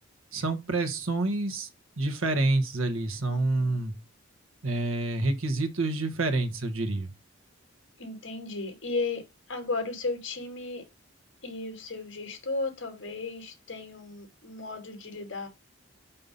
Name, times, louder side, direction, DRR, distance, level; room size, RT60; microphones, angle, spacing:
voice 1, 0.3-1.7 2.0-3.9 4.6-7.1, right 2 dB, 85° right, 1.3 m, -28 dB
voice 2, 3.2-3.8 8.0-10.8 11.4-15.5, left 3 dB, 65° left, 2.6 m, -35 dB
5.7 x 5.4 x 5.3 m
head